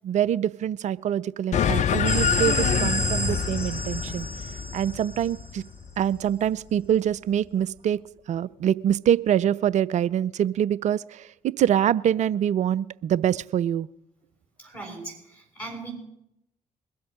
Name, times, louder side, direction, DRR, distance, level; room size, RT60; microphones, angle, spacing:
voice 1, 0.0-4.3 4.7-5.6 6.0-8.0 8.3-13.9, right 10 dB, 45° right, 19 dB, 0.4 m, -25 dB
sound 1, 1.5-6.3, left 8 dB, 45° left, 0.5 m, -26 dB
sound 2, 2.0-5.7, right 1 dB, 15° left, 3.9 m, -30 dB
voice 2, 14.6-15.9, right 2 dB, 85° left, -6 dB, 5.4 m, -39 dB
22.0 x 7.8 x 5.1 m, 0.83 s
figure-of-eight pair, 40°, 17 cm